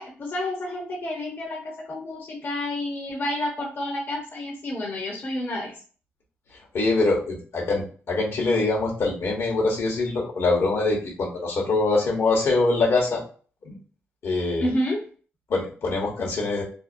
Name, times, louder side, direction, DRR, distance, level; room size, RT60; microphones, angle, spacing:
voice 1, 0.0-5.7 14.6-15.0, left 1 dB, 45° left, -3 dB, 0.8 m, -29 dB
voice 2, 6.7-13.2 13.6-13.8 14.2-14.7 15.5-16.6, left 3 dB, 70° left, -1 dB, 1.0 m, -24 dB
2.7 x 2.1 x 2.6 m, 0.40 s
cardioid pair, 60°, 5 cm